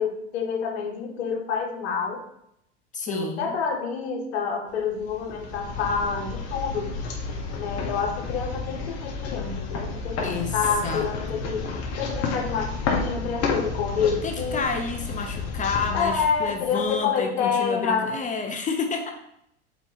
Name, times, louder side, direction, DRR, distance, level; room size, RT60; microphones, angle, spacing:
voice 1, 0.0-2.2 3.1-6.9 7.6-11.7 12.0-14.7 15.9-18.2, left 6 dB, 65° left, 2 dB, 1.7 m, -28 dB
voice 2, 2.9-3.6 10.2-10.6 10.8-11.4 14.2-19.1, left 5 dB, 25° left, 5 dB, 0.8 m, -30 dB
sound 1, 4.9-17.0, left 4 dB, 45° left, 1.9 m, -31 dB
6.5 x 4.5 x 4.8 m, 0.78 s
hypercardioid pair, 100°, 33 cm